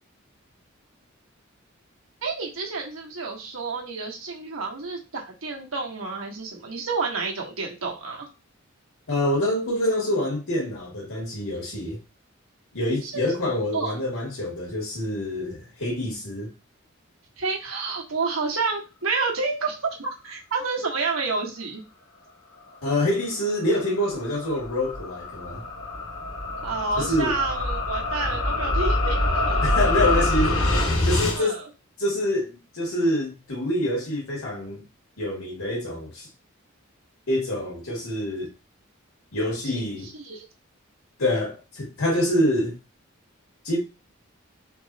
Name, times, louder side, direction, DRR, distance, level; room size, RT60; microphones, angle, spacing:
voice 1, 2.2-8.3 13.0-13.3 13.7-13.9 17.4-21.8 26.6-29.7 31.3-31.6 39.6-40.4, right 4 dB, 80° right, 1.3 m, -29 dB
voice 2, 9.1-12.0 12.7-16.5 22.8-25.6 27.0-27.3 29.6-30.7 31.0-31.6 32.0-34.8 35.2-36.3 37.3-38.5 39.3-40.1 41.2-42.8 43.6-43.8, left 1 dB, 90° left, 2.1 m, -26 dB
sound 1, 23.6-31.4, left 2 dB, 70° left, 1.3 m, -25 dB
4.5 x 3.0 x 2.8 m
head